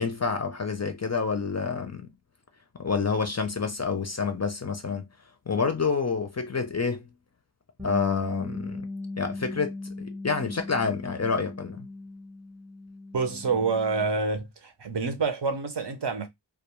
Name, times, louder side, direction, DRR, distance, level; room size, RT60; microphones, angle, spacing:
voice 1, 0.0-2.1 2.8-5.0 5.5-7.1 7.8-8.9 9.2-11.9, left 5 dB, 35° left, 0.4 m, -28 dB
Bass guitar, 7.8-14.0, left 2 dB, 5° right, 0.7 m, -38 dB
voice 2, 13.1-16.3, right 4 dB, 60° right, 0.7 m, -27 dB
2.3 x 2.2 x 2.9 m
wide cardioid pair, 50°, 47 cm